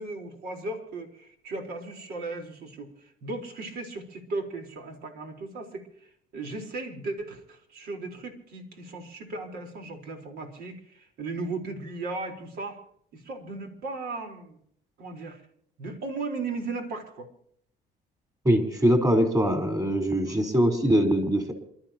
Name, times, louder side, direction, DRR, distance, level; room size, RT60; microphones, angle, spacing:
voice 1, 0.0-12.8 13.1-14.6 15.0-15.4 15.8-17.3 20.2-20.4, right 3 dB, 70° right, 3 dB, 4.3 m, -36 dB
voice 2, 18.4-21.5, equal, 20° right, 5 dB, 4.2 m, -22 dB
28.0 x 13.0 x 3.0 m, 0.67 s
cardioid pair, 110°, 17 cm